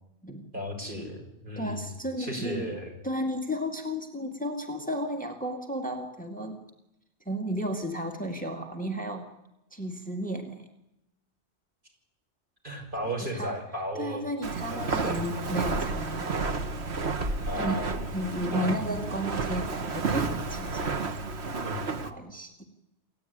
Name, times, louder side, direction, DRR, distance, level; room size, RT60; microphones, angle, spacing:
voice 1, 0.5-1.8 2.2-2.9 12.6-14.2 14.7-15.2 17.5-18.0 18.5-18.8 21.6-21.8, equal, 45° right, 1 dB, 6.0 m, -35 dB
voice 2, 1.6-2.7 3.0-6.6 7.3-9.3 9.7-10.6 13.0-13.6 14.0-16.4 17.6-17.8 18.1-21.1 21.9-22.6, equal, 5° left, 3 dB, 2.2 m, -33 dB
Walk footsteps, 14.4-22.1, right 3 dB, 70° right, 1.6 m, -31 dB
28.5 x 16.0 x 9.6 m, 0.89 s
omnidirectional pair, 1.1 m